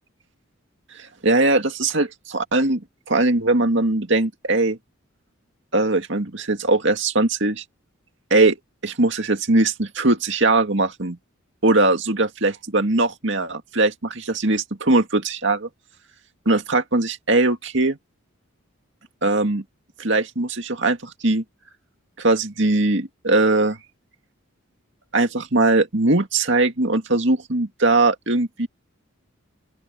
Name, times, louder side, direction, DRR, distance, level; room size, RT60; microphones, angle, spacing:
voice 1, 1.2-2.8 3.1-4.8 5.7-7.6 8.3-8.6 8.8-11.2 11.6-15.7 16.5-18.0 19.2-19.6 20.0-21.4 22.2-23.8 25.1-28.7, right 2 dB, 60° right, 2.3 m, -20 dB
open air
head